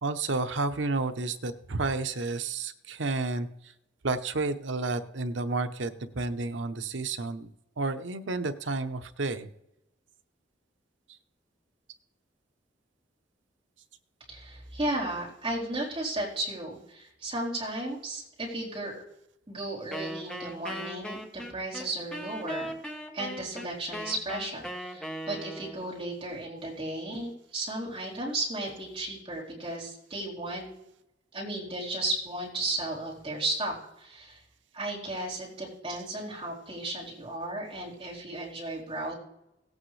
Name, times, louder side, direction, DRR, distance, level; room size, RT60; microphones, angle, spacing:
voice 1, 0.0-3.5 4.0-7.5 7.8-9.5, right 3 dB, 85° right, 8 dB, 0.8 m, -31 dB
voice 2, 14.3-19.0 19.5-22.7 23.1-30.7 31.3-34.4 34.7-39.1, right 2 dB, 30° right, -6 dB, 4.1 m, -34 dB
Wind instrument woodwind instrument, 19.9-25.9, equal, 5° left, 1.2 m, -38 dB
17.5 x 8.6 x 3.3 m, 0.85 s
head